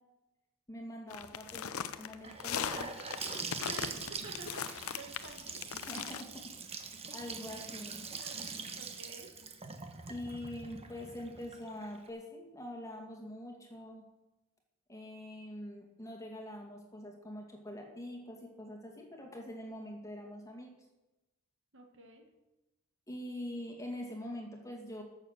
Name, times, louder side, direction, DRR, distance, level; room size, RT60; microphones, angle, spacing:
voice 1, 0.7-2.9 5.9-6.4 6.7-8.0 10.1-14.0 14.9-20.7 23.1-25.0, left 1 dB, 15° left, 1 dB, 2.2 m, -44 dB
sound 1, 1.1-6.2, left 8 dB, 80° left, 0.7 m, -39 dB
Gurgling / Sink (filling or washing) / Bathtub (filling or washing), 2.2-12.1, right 5 dB, 30° right, 1.1 m, -43 dB
voice 2, 3.6-5.7 8.2-9.3 21.7-22.2, right 3 dB, 60° right, 3 dB, 1.9 m, -50 dB
13.0 x 7.1 x 6.6 m, 1.0 s
head